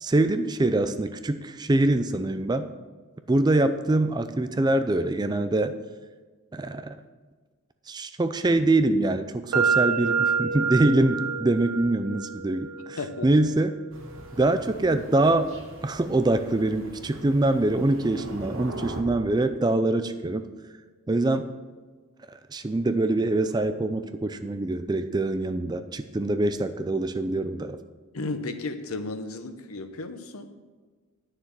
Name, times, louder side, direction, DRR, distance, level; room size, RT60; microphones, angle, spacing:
voice 1, 0.0-2.7 3.3-5.7 6.5-6.9 7.9-13.7 14.4-15.5 15.8-20.5 21.1-21.5 22.3-27.8, right 2 dB, 20° right, 10 dB, 0.4 m, -24 dB
sound 1, 9.5-17.4, right 6 dB, 85° right, 0.6 m, -30 dB
voice 2, 13.0-13.3 28.1-30.5, left 3 dB, 80° left, 9 dB, 0.9 m, -34 dB
Thunder, 13.9-19.0, right 1 dB, 60° right, 1.5 m, -41 dB
9.6 x 6.7 x 5.9 m, 1.4 s
head